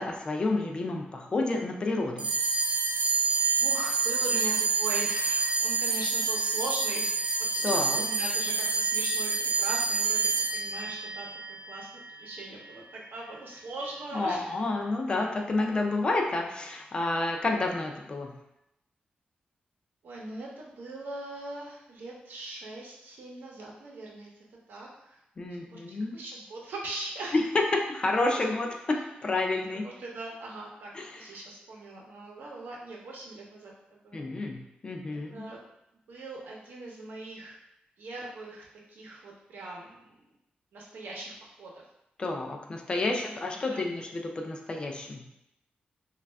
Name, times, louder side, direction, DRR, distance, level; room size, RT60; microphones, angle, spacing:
voice 1, 0.0-2.3 7.6-8.0 14.1-18.3 25.4-26.2 27.3-27.4 27.9-29.9 30.9-31.1 34.1-35.4 42.2-45.2, left 2 dB, 30° left, 2 dB, 0.4 m, -30 dB
sound 1, 2.2-12.8, right 4 dB, 35° right, 0.6 m, -28 dB
voice 2, 3.6-7.2 7.5-14.5 20.0-24.3 24.7-25.2 25.6-27.4 28.3-28.4 29.8-34.2 35.3-35.6 36.1-37.5 38.0-40.2 40.7-41.8 43.0-43.8, right 2 dB, 80° right, -2 dB, 0.8 m, -40 dB
3.2 x 2.3 x 3.3 m, 0.83 s
wide cardioid pair, 170°, 3 cm